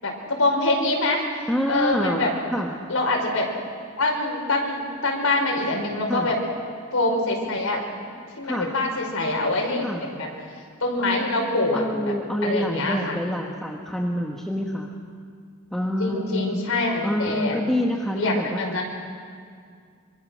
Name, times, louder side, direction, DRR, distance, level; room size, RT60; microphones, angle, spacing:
voice 1, 0.0-1.2 1.7-2.3 2.9-3.5 4.0-6.4 6.9-7.8 8.4-10.3 10.8-12.1 12.4-13.2 16.0-17.6 18.1-18.8, left 2 dB, 85° left, 0 dB, 5.5 m, -24 dB
voice 2, 1.5-2.7 6.1-6.3 8.4-8.7 9.8-10.1 11.7-14.9 15.7-16.6 17.0-18.8, equal, ahead, -1 dB, 1.5 m, -27 dB
25.5 x 25.0 x 6.5 m, 2.2 s
head